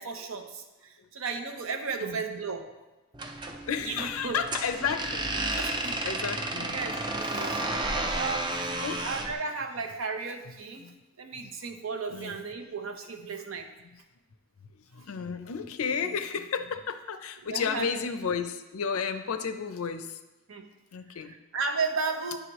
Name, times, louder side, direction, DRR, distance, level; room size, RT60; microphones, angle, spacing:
voice 1, 0.0-2.7 3.8-4.4 5.5-6.1 6.6-7.6 7.9-8.7 9.0-10.8 11.2-13.7 16.0-16.1 17.4-17.9 20.5-20.7 21.2-22.4, right 4 dB, 70° right, 6 dB, 0.7 m, -34 dB
sound 1, 3.1-9.3, right 2 dB, 20° right, 0.4 m, -32 dB
voice 2, 3.6-6.8 7.9-8.2 8.8-9.1 10.8-10.9 11.4-11.8 12.1-12.4 14.7-20.2 20.9-21.3, left 6 dB, 90° left, 9 dB, 0.5 m, -33 dB
10.0 x 4.8 x 3.0 m, 1.1 s
head